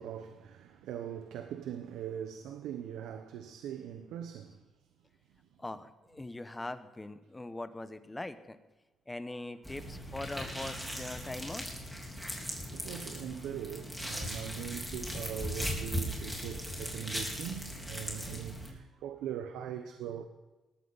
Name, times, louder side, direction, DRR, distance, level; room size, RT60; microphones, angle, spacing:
voice 1, 0.0-4.6 12.7-20.2, right 9 dB, 90° right, 0.9 m, -41 dB
voice 2, 5.6-8.6 9.1-11.7 12.8-13.0, left 2 dB, 15° left, 1.1 m, -42 dB
Wet Flesh & Blood Squeeze, 9.6-18.7, equal, ahead, 4.0 m, -38 dB
18.0 x 14.0 x 4.1 m
cardioid pair, 90°, 0 cm